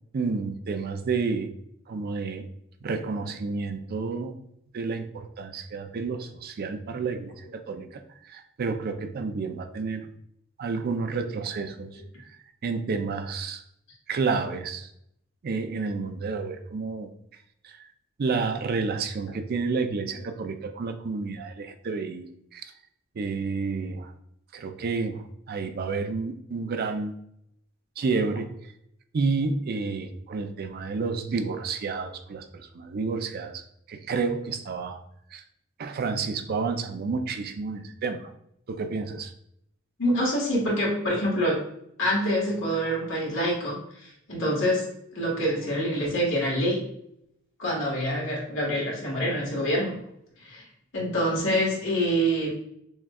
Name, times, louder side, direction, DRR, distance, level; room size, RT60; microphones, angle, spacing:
voice 1, 0.1-1.5 1.9-2.5 2.8-4.3 4.7-8.0 8.3-10.1 10.6-11.9 12.2-12.3 12.6-13.6 14.1-14.9 15.4-17.1 17.6-17.8 18.2-22.3 22.5-22.6 23.2-24.1 24.5-27.1 28.0-28.5 29.1-33.6 33.9-35.0 35.3-35.4 35.8-38.3 38.7-39.3, right 4 dB, 50° right, 7 dB, 0.4 m, -30 dB
voice 2, 40.0-41.6 42.0-44.9 45.1-46.8 47.6-50.0 50.4-50.6 50.9-52.5, equal, 65° left, -4 dB, 1.5 m, -26 dB
6.1 x 2.2 x 2.3 m, 0.75 s
head